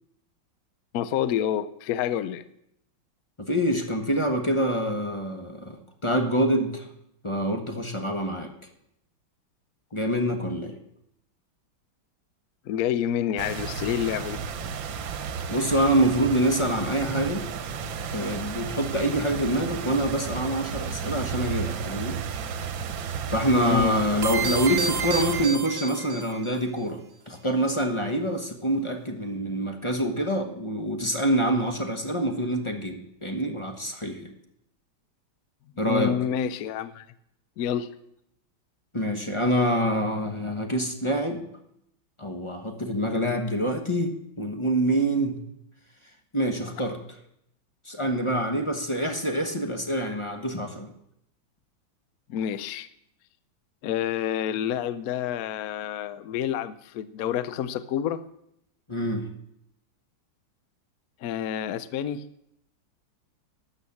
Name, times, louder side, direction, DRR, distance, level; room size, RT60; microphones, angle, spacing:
voice 1, 0.9-2.4 12.7-14.4 23.6-23.9 35.8-37.0 37.6-37.9 52.3-52.9 53.8-58.2 61.2-62.3, left 10 dB, 70° left, 13 dB, 0.8 m, -28 dB
voice 2, 3.4-6.9 7.2-8.5 9.9-10.8 15.5-17.5 18.1-22.2 23.3-34.3 35.8-36.1 38.9-41.4 42.2-45.4 46.3-47.0 47.8-50.9 58.9-59.3, right 1 dB, 20° left, 4 dB, 0.8 m, -26 dB
sound 1, 13.4-25.5, right 7 dB, 70° right, 1.6 m, -33 dB
sound 2, 24.2-26.5, right 5 dB, 40° right, 1.0 m, -30 dB
12.5 x 8.0 x 7.1 m, 0.77 s
omnidirectional pair, 2.2 m